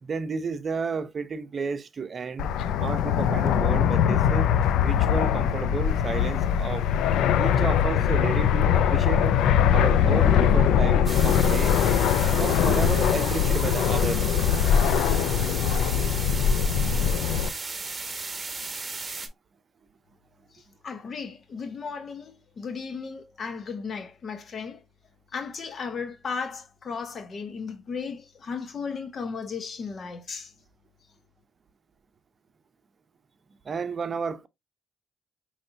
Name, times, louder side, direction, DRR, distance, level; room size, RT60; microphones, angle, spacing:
voice 1, 0.0-2.5 2.7-4.5 4.8-6.9 7.4-9.4 9.7-11.8 12.3-14.3 33.6-34.5, right 5 dB, 40° right, 0.7 m, -32 dB
Fixed-wing aircraft airplane, 2.4-17.5, left 8 dB, 85° left, 0.4 m, -22 dB
sound 1, 11.1-19.3, right 3 dB, 25° right, 1.2 m, -35 dB
voice 2, 20.5-24.8 25.3-30.5, left 5 dB, 50° left, 0.7 m, -35 dB
5.3 x 3.2 x 2.6 m
cardioid pair, 90°, 0 cm